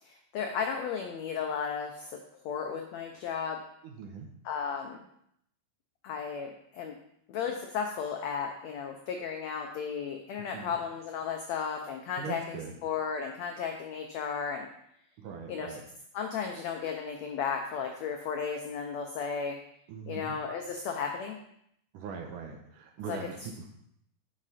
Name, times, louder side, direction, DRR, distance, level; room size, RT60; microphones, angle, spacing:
voice 1, 0.0-3.6 4.4-5.0 6.0-7.0 7.3-14.7 15.5-15.7 16.1-19.6 20.1-21.4 23.1-23.3, left 6 dB, 90° left, 3 dB, 1.5 m, -34 dB
voice 2, 3.8-4.3 10.5-10.7 12.2-12.8 15.2-15.8 19.9-20.4 21.9-23.8, right 5 dB, 70° right, 3 dB, 2.2 m, -41 dB
9.9 x 6.6 x 4.2 m, 0.73 s
omnidirectional pair, 4.2 m